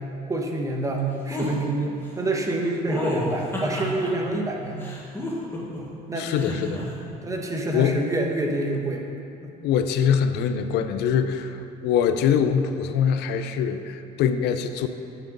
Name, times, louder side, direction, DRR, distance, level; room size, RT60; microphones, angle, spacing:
voice 1, 0.3-4.8 5.8-6.6 7.2-9.0 9.4-9.5, right 2 dB, 20° right, 1 dB, 1.0 m, -27 dB
sound 1, 1.3-1.5 2.9-4.1 4.8-5.8 6.3-6.8, left 1 dB, 15° left, 1.7 m, -30 dB
voice 2, 6.2-6.8 7.7-8.0 9.6-14.9, left 7 dB, 85° left, 9 dB, 0.5 m, -23 dB
7.8 x 6.0 x 5.3 m, 2.8 s
cardioid pair, 110°, 17 cm